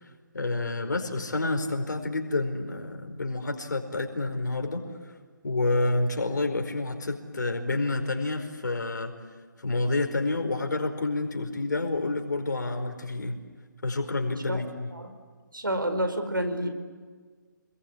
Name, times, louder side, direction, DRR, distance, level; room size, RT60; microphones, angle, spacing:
voice 1, 0.3-4.8 5.4-9.1 9.6-13.4 13.8-14.9, left 2 dB, 65° left, 5 dB, 4.9 m, -29 dB
voice 2, 14.3-15.1 15.5-16.7, right 1 dB, 90° right, 8 dB, 4.9 m, -30 dB
27.5 x 21.5 x 10.0 m, 1.5 s
figure-of-eight pair, 145°, 11 cm